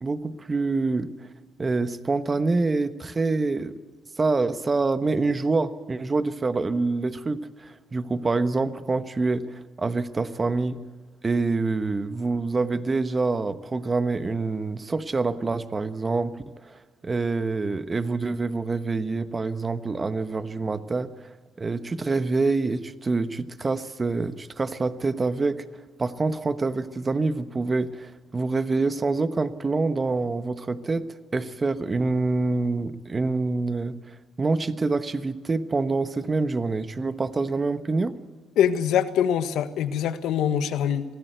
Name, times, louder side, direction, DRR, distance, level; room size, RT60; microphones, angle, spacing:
voice 1, 0.0-1.1 1.6-3.7 4.2-10.8 11.2-16.3 16.6-21.1 21.6-25.6 26.0-31.1 31.3-34.0 34.4-38.1, right 3 dB, 30° right, 12 dB, 1.2 m, -26 dB
voice 2, 38.6-41.0, left 9 dB, 85° left, 10 dB, 1.4 m, -23 dB
24.5 x 17.0 x 8.1 m, 1.3 s
cardioid pair, 90°, 0 cm